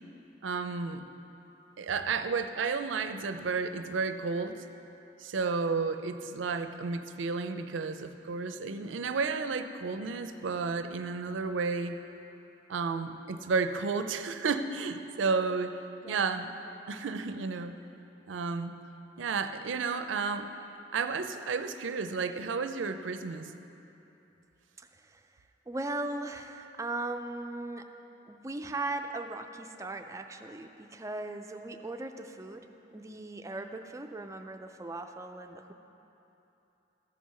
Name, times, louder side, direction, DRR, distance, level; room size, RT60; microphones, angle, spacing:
voice 1, 0.4-1.0 1.8-4.6 5.2-12.0 12.7-15.8 16.1-16.5 16.9-17.7 18.3-18.8 19.2-20.5 20.9-23.5, right 4 dB, 85° right, 9 dB, 0.5 m, -32 dB
voice 2, 24.8-25.2 25.7-27.9 28.3-32.7 32.9-35.7, right 2 dB, 15° right, 6 dB, 0.4 m, -38 dB
14.0 x 4.7 x 5.6 m, 3.0 s
head